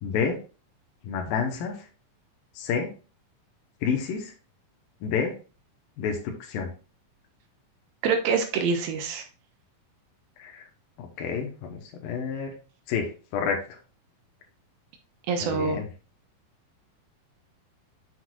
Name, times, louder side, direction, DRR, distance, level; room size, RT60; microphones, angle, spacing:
voice 1, 0.0-0.4 1.0-1.9 2.6-2.9 3.8-4.3 5.0-5.3 6.0-6.7 10.4-10.6 11.0-12.6 12.9-13.8 15.4-15.9, left 6 dB, 75° left, 2 dB, 2.7 m, -29 dB
voice 2, 8.0-9.2 15.3-15.8, right 5 dB, 80° right, 5 dB, 3.0 m, -25 dB
7.8 x 6.2 x 2.4 m, 0.34 s
omnidirectional pair, 4.2 m